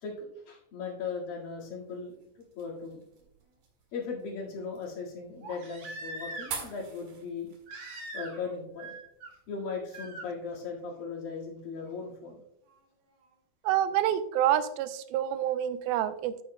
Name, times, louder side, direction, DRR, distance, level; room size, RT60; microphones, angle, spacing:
voice 1, 0.0-3.0 3.9-7.5 8.1-9.0 9.5-12.4, left 5 dB, 70° left, -3 dB, 3.7 m, -38 dB
sound 1, 1.6-10.0, right 6 dB, 70° right, 3.4 m, -48 dB
Crying sobbing, 2.7-2.8 5.4-6.7 7.7-8.5 8.8-9.3 9.9-10.3 11.9-12.0, right 2 dB, 50° right, 2.6 m, -42 dB
voice 2, 13.6-16.4, right 11 dB, 85° right, 12 dB, 2.5 m, -27 dB
10.5 x 9.8 x 2.2 m, 0.76 s
omnidirectional pair, 4.2 m